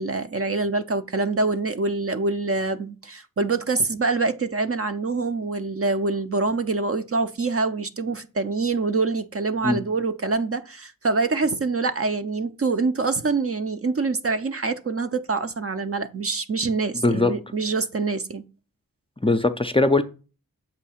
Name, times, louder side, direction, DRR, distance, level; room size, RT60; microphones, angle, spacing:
voice 1, 0.0-18.4, right 3 dB, 40° right, 0.5 m, -25 dB
voice 2, 16.9-17.3 19.2-20.0, left 2 dB, 15° left, 0.4 m, -20 dB
7.5 x 2.7 x 5.6 m
wide cardioid pair, 80°, 35 cm